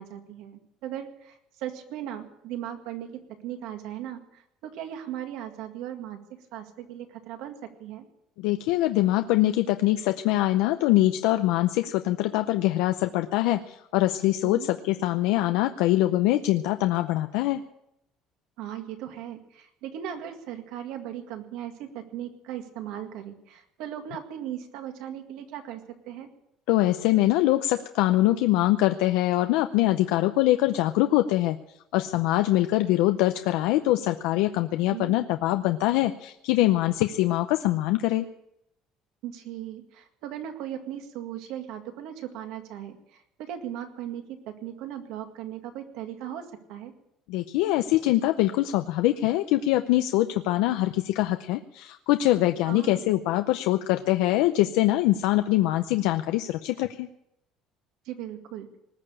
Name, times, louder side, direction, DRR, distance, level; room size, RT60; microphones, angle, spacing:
voice 1, 0.0-6.2 6.5-7.5 7.8-8.0 14.4-14.7 18.6-25.8 26.1-26.3 34.9-35.1 39.2-43.0 43.4-46.9 52.7-53.1 58.1-58.7, right 10 dB, 65° right, 6 dB, 2.0 m, -38 dB
voice 2, 8.4-17.6 26.7-31.6 31.9-38.3 47.3-57.1, left 15 dB, 85° left, 7 dB, 0.6 m, -23 dB
19.5 x 6.9 x 9.9 m, 0.82 s
cardioid pair, 180°, 0 cm